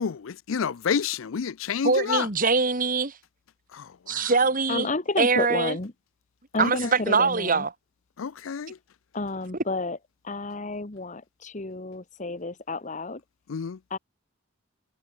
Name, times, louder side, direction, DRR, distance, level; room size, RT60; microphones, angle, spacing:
voice 1, 0.0-2.3 3.7-4.3 6.8-6.9 8.2-8.8 13.5-13.8, left 6 dB, 75° left, 0.5 m, -29 dB
voice 2, 1.8-3.2 4.1-4.9 5.2-5.8 6.6-6.8 7.1-7.7, right 4 dB, 40° right, 2.1 m, -23 dB
voice 3, 4.7-5.9 6.5-7.7 9.1-10.0 10.2-13.2 13.9-14.0, left 3 dB, 35° left, 1.2 m, -30 dB
head